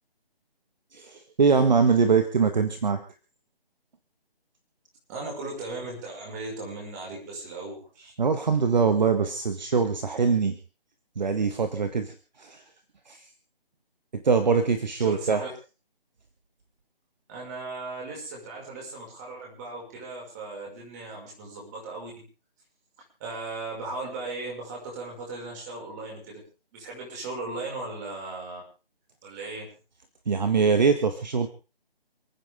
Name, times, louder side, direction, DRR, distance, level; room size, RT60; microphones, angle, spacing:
voice 1, 0.9-3.0 8.2-10.6 11.1-12.6 13.1-13.2 14.1-15.4 30.3-31.5, right 5 dB, 45° right, 8 dB, 1.6 m, -23 dB
voice 2, 5.1-8.1 15.0-15.5 17.3-22.1 23.2-26.4 26.7-28.6 29.2-29.7, right 3 dB, 20° right, -1 dB, 6.0 m, -37 dB
29.0 x 9.8 x 3.7 m, 0.33 s
figure-of-eight pair, 165°, 30 cm